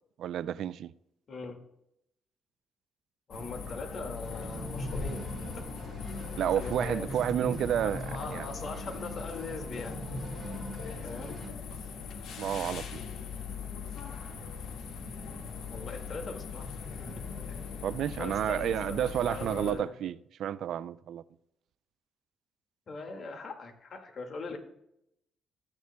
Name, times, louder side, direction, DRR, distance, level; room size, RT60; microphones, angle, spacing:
voice 1, 0.2-0.9 6.4-8.0 8.3-8.5 12.4-13.0 17.8-21.2, right 10 dB, 75° right, 0.3 m, -31 dB
voice 2, 1.3-1.6 3.3-5.5 6.5-7.1 7.8-10.0 11.0-11.4 15.7-16.7 17.1-17.3 18.2-19.9 22.9-24.6, left 3 dB, 50° left, 2.0 m, -41 dB
sound 1, 3.3-19.7, left 6 dB, 90° left, 1.7 m, -40 dB
sound 2, 4.2-11.5, right 1 dB, 20° right, 4.4 m, -41 dB
14.0 x 9.5 x 2.2 m
cardioid pair, 115°, 0 cm